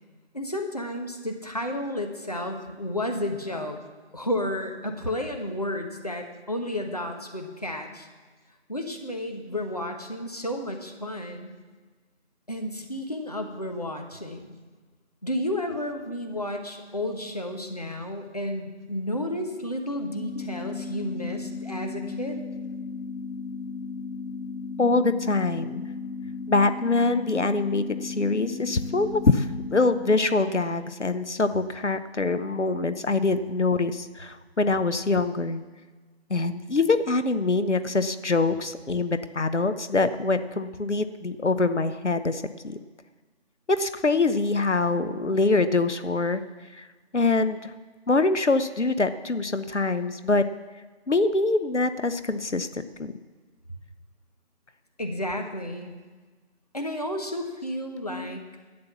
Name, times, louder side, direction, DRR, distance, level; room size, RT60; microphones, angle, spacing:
voice 1, 0.3-3.8 4.1-8.1 8.7-11.5 12.5-14.5 15.2-22.4 55.0-55.9 56.7-58.4, left 1 dB, 35° left, 3 dB, 1.2 m, -32 dB
sound 1, 20.1-30.1, left 4 dB, 55° left, 3.7 m, -35 dB
voice 2, 24.8-25.8 26.5-35.6 36.3-42.8 43.7-46.4 46.7-46.9 47.1-47.7 48.1-50.5 51.1-53.1 58.1-58.4, left 3 dB, 85° left, 12 dB, 0.9 m, -24 dB
12.0 x 8.7 x 7.2 m, 1.4 s
figure-of-eight pair, 170°, 34 cm